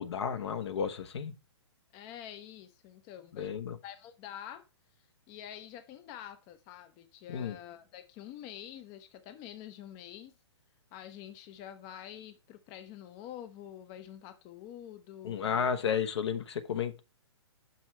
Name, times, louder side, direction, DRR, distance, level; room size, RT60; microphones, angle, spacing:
voice 1, 0.0-1.3 3.3-3.8 7.3-7.6 15.2-17.0, left 7 dB, 65° left, 1.1 m, -32 dB
voice 2, 1.9-3.5 3.8-4.7 5.0-10.3 10.9-15.7, left 11 dB, 30° left, 0.7 m, -47 dB
6.2 x 5.6 x 4.3 m
hypercardioid pair, 130°, 15 cm